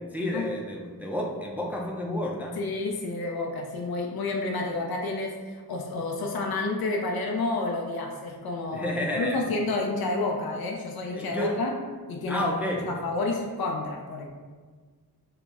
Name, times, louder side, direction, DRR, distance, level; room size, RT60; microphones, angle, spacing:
voice 1, 0.1-2.6 8.7-9.4 11.1-11.5 12.3-12.9, left 1 dB, 5° right, -2 dB, 0.4 m, -30 dB
voice 2, 2.6-11.7 12.1-12.6 12.9-14.3, left 2 dB, 75° left, 0 dB, 0.5 m, -30 dB
3.7 x 2.0 x 3.5 m, 1.5 s
wide cardioid pair, 60°, 38 cm